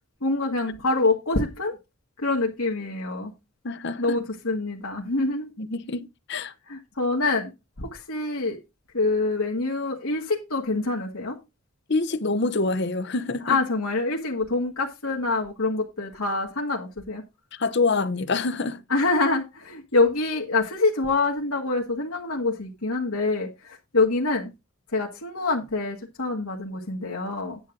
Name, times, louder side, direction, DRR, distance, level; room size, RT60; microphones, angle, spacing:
voice 1, 0.2-1.8 2.2-3.3 4.0-5.5 6.7-7.5 7.8-8.6 8.9-11.4 13.5-17.2 18.9-24.5 24.9-27.6, left 3 dB, 85° left, 1.8 m, -25 dB
voice 2, 3.6-4.2 5.6-6.5 11.9-13.6 17.5-18.8, left 3 dB, 50° left, 0.8 m, -26 dB
10.0 x 7.4 x 3.8 m
head